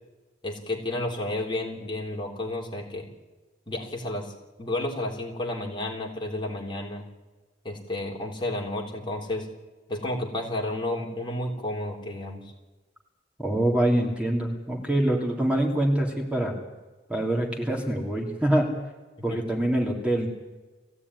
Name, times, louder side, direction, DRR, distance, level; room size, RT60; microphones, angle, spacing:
voice 1, 0.4-3.1 3.7-4.3 4.6-7.0 7.7-9.5 9.9-12.4 19.3-19.4, left 1 dB, 25° left, 0 dB, 3.4 m, -31 dB
voice 2, 13.4-16.5 17.1-18.7 19.2-20.3, right 1 dB, 5° right, 1 dB, 3.2 m, -25 dB
21.0 x 16.0 x 9.8 m, 1.2 s
head